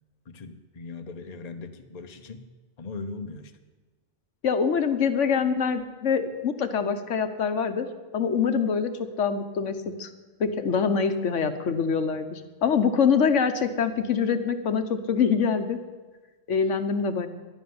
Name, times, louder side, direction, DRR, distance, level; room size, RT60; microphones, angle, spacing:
voice 1, 0.3-2.5 2.8-3.5, left 3 dB, 35° left, 7 dB, 0.9 m, -39 dB
voice 2, 4.4-7.9 8.1-8.9 9.2-10.1 10.4-15.8 16.5-17.3, left 6 dB, 75° left, 9 dB, 1.3 m, -24 dB
11.0 x 11.0 x 9.5 m, 1.3 s
omnidirectional pair, 1.3 m